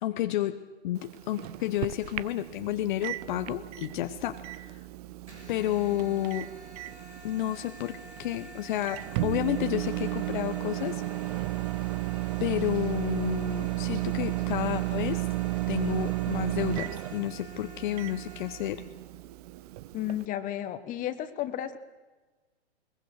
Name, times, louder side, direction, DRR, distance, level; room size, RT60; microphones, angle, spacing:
voice 1, 0.0-4.8 5.5-6.5 7.2-11.0 11.3-11.4 12.4-15.3 15.7-18.8, left 13 dB, 45° left, 9 dB, 1.1 m, -31 dB
Microwave oven, 0.9-20.3, right 18 dB, 35° right, 0.6 m, -34 dB
sound 1, 5.3-18.7, equal, 85° right, 4.8 m, -49 dB
voice 2, 19.9-21.8, left 12 dB, 25° left, 10 dB, 1.4 m, -33 dB
22.0 x 21.0 x 6.5 m, 1.3 s
figure-of-eight pair, 115°, 33 cm